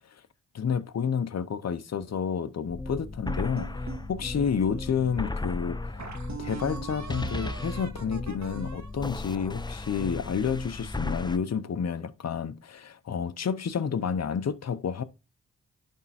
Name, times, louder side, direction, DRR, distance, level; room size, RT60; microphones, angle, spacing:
voice 1, 0.5-6.1 6.4-15.0, left 6 dB, 55° left, 0.9 m, -30 dB
sound 1, 2.7-11.4, left 2 dB, 15° left, 0.7 m, -35 dB
sound 2, 3.3-4.8 5.4-5.5 6.0-10.2, right 4 dB, 65° right, 1.6 m, -42 dB
11.0 x 3.7 x 4.3 m
cardioid pair, 60°, 31 cm